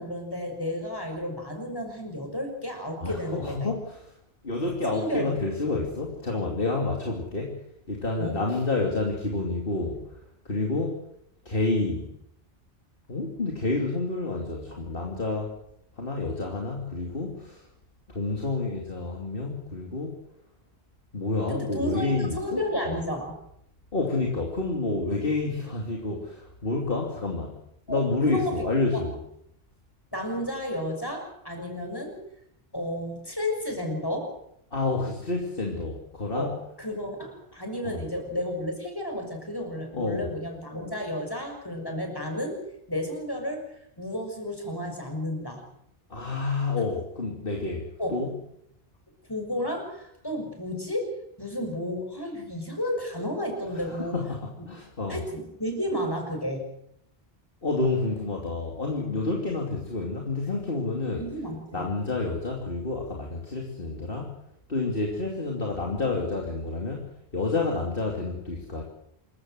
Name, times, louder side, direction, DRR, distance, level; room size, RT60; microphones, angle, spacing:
voice 1, 0.0-3.7 4.9-5.4 8.2-8.4 21.5-23.4 27.9-28.6 30.1-32.2 32.7-34.3 36.3-42.6 42.9-45.6 48.0-48.2 49.3-54.2 55.1-56.7 61.2-61.8, left 1 dB, 20° left, 3 dB, 6.3 m, -32 dB
voice 2, 3.0-4.1 4.4-11.0 11.4-12.1 13.1-15.6 16.0-17.7 18.1-20.2 21.1-23.0 23.9-27.6 27.9-29.2 34.7-36.5 37.8-38.1 39.9-40.3 46.1-48.3 53.7-55.2 57.6-61.3 61.7-64.4 64.7-68.8, left 3 dB, 60° left, 0 dB, 3.1 m, -29 dB
27.0 x 15.0 x 7.8 m, 0.75 s
omnidirectional pair, 1.0 m